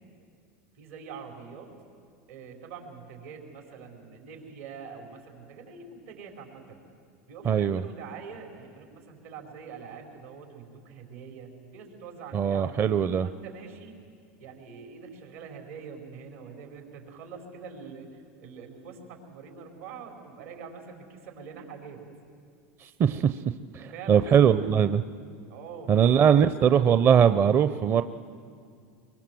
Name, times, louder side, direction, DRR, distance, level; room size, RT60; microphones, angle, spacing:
voice 1, 0.7-1.7 2.3-6.8 7.3-13.9 14.4-22.0 23.8-24.3 24.5-24.8 25.5-26.5, right 5 dB, 85° right, 2 dB, 5.0 m, -44 dB
voice 2, 7.5-7.8 12.3-13.3 22.8-23.4 23.7-25.0 25.9-28.0, right 8 dB, 35° right, 11 dB, 0.6 m, -21 dB
23.5 x 23.0 x 7.7 m, 2.2 s
supercardioid pair, 110°, 7 cm